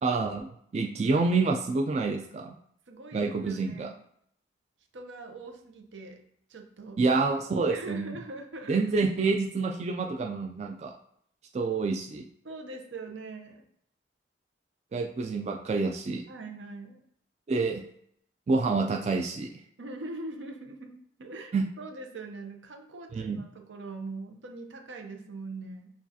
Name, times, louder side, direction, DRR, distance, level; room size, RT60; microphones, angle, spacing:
voice 1, 0.0-2.5 3.1-3.9 7.0-8.1 8.7-10.9 11.5-12.3 14.9-16.2 17.5-17.8 18.5-19.6 21.5-21.7 23.1-23.4, right 3 dB, 35° right, 1 dB, 0.3 m, -28 dB
voice 2, 2.9-4.0 4.9-6.2 6.5-7.0 7.7-8.8 12.4-13.7 16.3-17.0 19.8-20.9 21.2-25.9, right 3 dB, 80° right, 4 dB, 0.7 m, -42 dB
7.0 x 2.4 x 2.7 m, 0.69 s
head